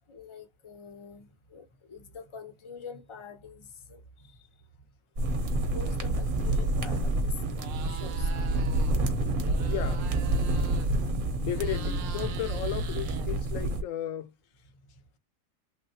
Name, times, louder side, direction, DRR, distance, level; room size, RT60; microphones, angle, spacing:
voice 1, 0.1-4.5 5.7-8.7 9.1-9.7, left 3 dB, 35° left, 0.5 m, -45 dB
sound 1, 5.2-13.8, right 2 dB, 50° right, 0.8 m, -28 dB
Funny Goat Sound, 7.5-9.0 9.3-11.1 11.4-13.7, right 6 dB, 75° right, 1.0 m, -44 dB
voice 2, 9.4-10.0 11.4-14.3, left 12 dB, 85° left, 1.0 m, -35 dB
3.2 x 2.5 x 2.7 m
omnidirectional pair, 1.3 m